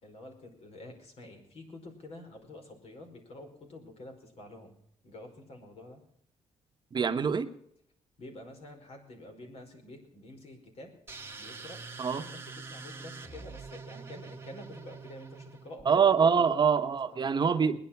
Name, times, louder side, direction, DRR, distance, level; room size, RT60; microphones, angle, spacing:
voice 1, 0.0-4.8 5.0-6.0 8.2-10.9 11.4-11.8 12.1-16.7 17.1-17.3, left 2 dB, 60° left, 5 dB, 5.0 m, -48 dB
voice 2, 6.9-7.5 12.0-12.2 15.8-17.8, right 6 dB, 40° right, 7 dB, 1.1 m, -25 dB
sound 1, 11.1-15.8, right 4 dB, 20° right, 1.3 m, -45 dB
21.0 x 10.5 x 5.8 m, 0.71 s
cardioid pair, 110°, 12 cm